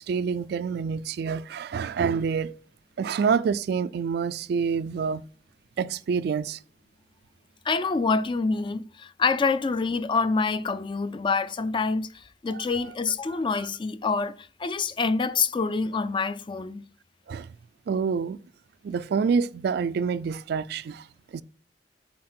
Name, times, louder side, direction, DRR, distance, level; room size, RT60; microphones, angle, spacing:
voice 1, 0.0-2.6 3.0-5.2 5.8-6.6 12.5-12.9 17.3-17.5 17.9-18.4 18.8-21.0 21.3-21.4, right 6 dB, 60° right, 0.3 m, -27 dB
voice 2, 7.7-16.8, left 4 dB, 25° left, 0.4 m, -26 dB
7.5 x 4.3 x 4.3 m
head